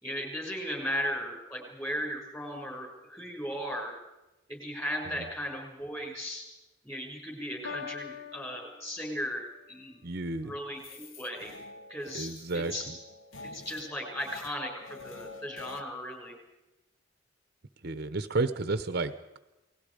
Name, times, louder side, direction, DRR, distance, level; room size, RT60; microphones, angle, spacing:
voice 1, 0.0-3.9 4.5-6.4 6.8-10.1 10.4-11.5 11.9-13.0 13.4-16.4, equal, 15° left, 1 dB, 6.4 m, -36 dB
Piano, 7.6-9.6, left 6 dB, 60° left, 1.1 m, -43 dB
voice 2, 10.0-10.5 12.1-12.7 17.8-19.4, right 3 dB, 50° right, 11 dB, 0.9 m, -31 dB
sound 1, 10.7-15.8, left 3 dB, 75° left, 1.6 m, -48 dB
29.0 x 20.0 x 5.1 m, 0.99 s
head